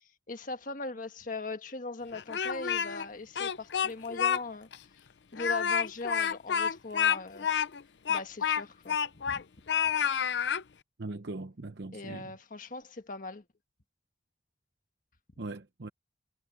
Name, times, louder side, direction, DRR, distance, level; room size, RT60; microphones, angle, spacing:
voice 1, 0.3-4.7 5.3-7.5 8.1-9.4 11.9-13.4, left 3 dB, 50° left, 1.5 m, -39 dB
Speech, 2.1-3.1 3.4-4.4 4.7-4.8 5.3-9.4 9.7-10.6, left 7 dB, 80° left, 0.6 m, -29 dB
voice 2, 11.0-12.3 15.4-15.9, right 2 dB, 70° right, 0.9 m, -40 dB
head